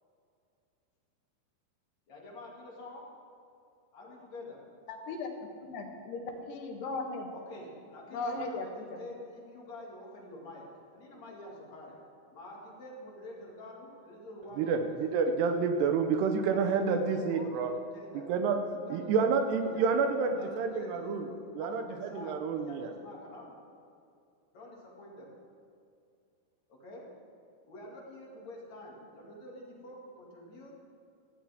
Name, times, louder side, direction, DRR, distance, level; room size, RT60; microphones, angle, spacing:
voice 1, 2.1-3.1 3.9-4.6 7.3-15.0 16.4-18.3 18.7-23.6 24.5-25.3 26.7-27.1 27.7-30.7, left 1 dB, 45° left, -3 dB, 3.4 m, -48 dB
voice 2, 4.9-5.3 5.6-7.3 8.1-9.0, left 3 dB, 80° left, 2 dB, 3.5 m, -37 dB
voice 3, 14.6-17.7 18.3-18.6 18.9-21.3 21.6-22.9, right 5 dB, 85° right, 6 dB, 3.1 m, -29 dB
17.0 x 16.0 x 3.7 m, 2.4 s
omnidirectional pair, 4.7 m